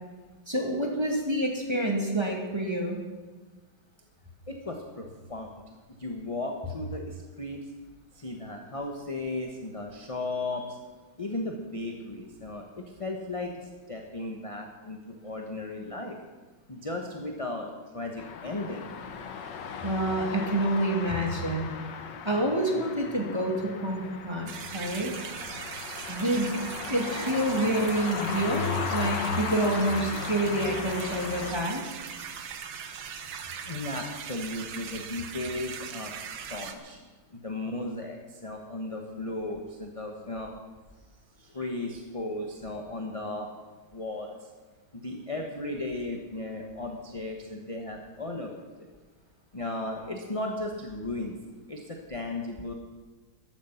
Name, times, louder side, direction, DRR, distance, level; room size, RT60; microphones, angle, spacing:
voice 1, 0.5-3.0 19.8-21.7 22.2-25.2 26.1-26.6 26.9-31.8, right 1 dB, 15° right, 0 dB, 2.1 m, -28 dB
voice 2, 4.5-5.6 6.0-7.6 8.1-10.8 11.2-16.2 16.7-18.9 33.6-36.1 36.5-37.0 37.3-40.5 41.4-43.5 43.9-44.5 44.9-48.9 49.5-51.4 51.7-52.7, left 2 dB, 20° left, 2 dB, 1.0 m, -35 dB
sound 1, 18.2-31.5, left 6 dB, 65° left, 1.6 m, -36 dB
sound 2, 24.5-36.7, right 7 dB, 75° right, 1.8 m, -40 dB
14.5 x 12.0 x 5.8 m, 1.3 s
omnidirectional pair, 2.2 m